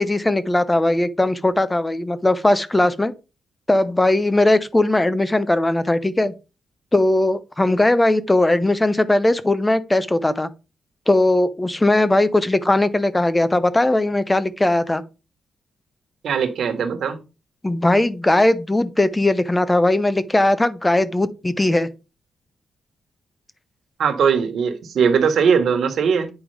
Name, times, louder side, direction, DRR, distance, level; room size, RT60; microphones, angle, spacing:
voice 1, 0.0-3.1 3.7-6.3 6.9-10.5 11.1-15.0 17.6-21.9, left 1 dB, 10° left, 0.5 m, -19 dB
voice 2, 16.2-17.2 24.0-26.3, right 6 dB, 60° right, 1.3 m, -19 dB
8.9 x 4.9 x 3.4 m
wide cardioid pair, 175°, 0 cm